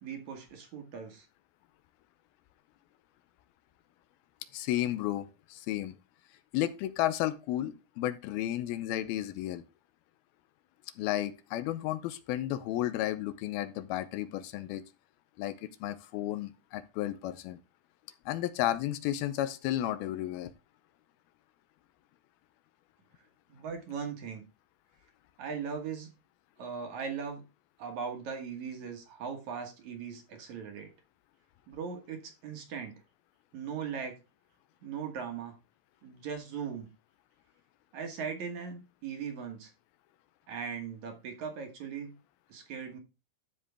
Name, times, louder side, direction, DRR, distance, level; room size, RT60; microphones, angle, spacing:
voice 1, 0.0-1.3 23.5-24.4 25.4-26.1 26.6-27.4 27.8-30.9 31.7-33.0 33.5-34.2 34.8-35.6 36.0-36.9 37.9-39.7 40.5-42.2 42.5-43.0, right 6 dB, 55° right, 2.4 m, -39 dB
voice 2, 4.5-6.0 6.5-9.6 11.0-14.8 15.4-15.5 15.8-17.6 18.3-20.5, left 13 dB, 80° left, 2.5 m, -33 dB
12.5 x 5.0 x 3.4 m
omnidirectional pair, 4.6 m